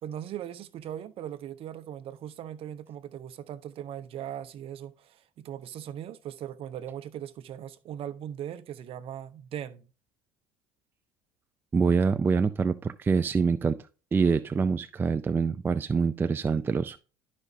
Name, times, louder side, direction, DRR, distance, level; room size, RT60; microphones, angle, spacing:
voice 1, 0.0-9.9, right 10 dB, 50° right, 0.8 m, -39 dB
voice 2, 11.7-13.8 14.1-17.0, right 5 dB, 15° right, 0.4 m, -25 dB
11.5 x 5.2 x 2.7 m
hypercardioid pair, 85°, 13 cm